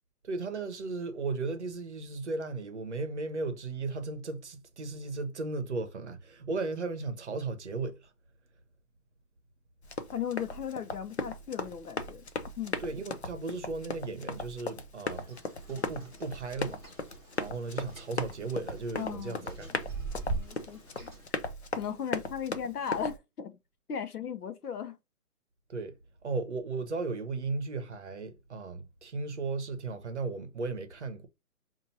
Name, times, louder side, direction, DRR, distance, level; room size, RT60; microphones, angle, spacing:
voice 1, 0.2-8.1 12.8-15.4 15.7-16.8 17.4-19.9 25.7-25.9 26.2-31.3, right 3 dB, 50° right, 0.8 m, -36 dB
Run, 9.8-23.2, left 3 dB, 45° left, 0.5 m, -38 dB
voice 2, 10.1-12.2 12.6-12.8 19.0-19.8 20.3-21.1 21.8-23.6 23.9-25.0, left 8 dB, 75° left, 0.9 m, -37 dB
sound 1, 15.1-21.3, right 2 dB, 15° left, 1.1 m, -42 dB
5.3 x 2.6 x 2.7 m
hypercardioid pair, 180°, 46 cm